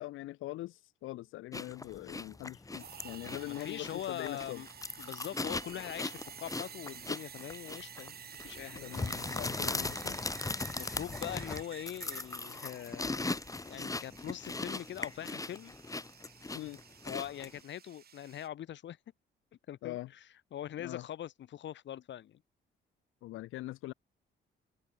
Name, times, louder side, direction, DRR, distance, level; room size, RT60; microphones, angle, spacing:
voice 1, 0.0-4.6 8.8-10.2 16.5-16.8 19.8-20.1 20.8-21.0 23.2-23.9, left 16 dB, 90° left, 1.3 m, -42 dB
sound 1, 1.5-17.6, left 3 dB, 15° left, 1.5 m, -39 dB
sound 2, 2.7-18.5, right 8 dB, 50° right, 2.1 m, -51 dB
voice 2, 3.4-4.7 5.0-8.2 8.4-8.8 10.7-13.2 13.6-15.8 17.1-19.0 19.7-20.0 20.5-22.4, left 11 dB, 65° left, 1.7 m, -42 dB
cardioid pair, 90°, 20 cm